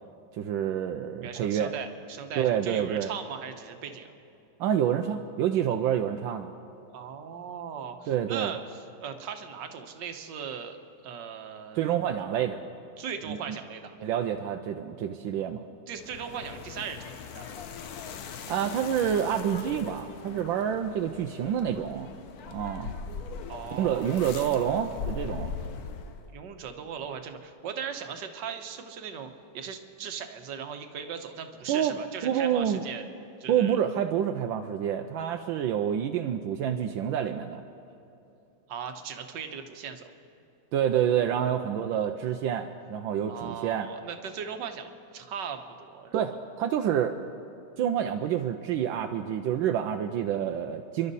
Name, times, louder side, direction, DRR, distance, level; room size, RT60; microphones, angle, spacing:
voice 1, 0.3-1.7 2.4-3.1 4.6-6.5 8.1-8.5 11.7-12.6 13.3-13.4 14.0-15.6 18.5-22.1 22.5-22.9 23.7-25.5 31.7-32.0 32.2-32.8 33.5-37.6 40.7-43.9 46.1-47.1 47.8-51.1, right 9 dB, 80° right, 5 dB, 1.4 m, -28 dB
voice 2, 1.2-4.1 6.9-10.8 11.0-11.8 13.0-13.9 15.9-17.5 23.5-24.0 26.3-33.0 33.4-33.8 38.7-40.1 43.3-46.1, right 7 dB, 65° right, 6 dB, 1.6 m, -38 dB
sound 1, 15.9-26.3, left 6 dB, 60° left, 1.1 m, -40 dB
30.0 x 12.0 x 4.1 m, 2.7 s
omnidirectional pair, 2.2 m